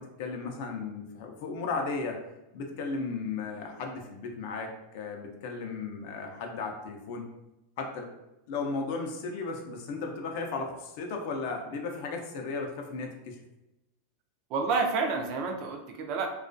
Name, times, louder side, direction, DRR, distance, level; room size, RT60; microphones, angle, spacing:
voice 1, 0.0-2.2 2.5-7.3 7.8-8.1 8.5-13.4, left 4 dB, 50° left, 3 dB, 0.4 m, -35 dB
voice 2, 14.5-16.3, right 4 dB, 40° right, 3 dB, 0.3 m, -29 dB
2.3 x 2.2 x 2.5 m, 0.93 s
supercardioid pair, 165°, 0 cm